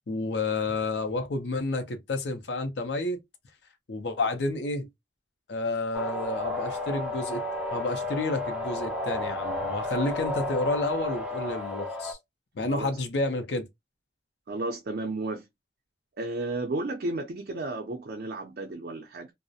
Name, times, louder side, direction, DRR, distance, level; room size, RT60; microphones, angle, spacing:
voice 1, 0.1-3.2 3.9-4.9 5.5-7.4 7.7-12.2 12.5-13.7, left 2 dB, 75° left, 0.6 m, -30 dB
sound 1, 5.9-12.1, left 2 dB, 5° right, 0.6 m, -32 dB
voice 2, 14.5-15.4 16.2-19.3, right 2 dB, 60° right, 0.4 m, -33 dB
2.4 x 2.0 x 2.6 m
head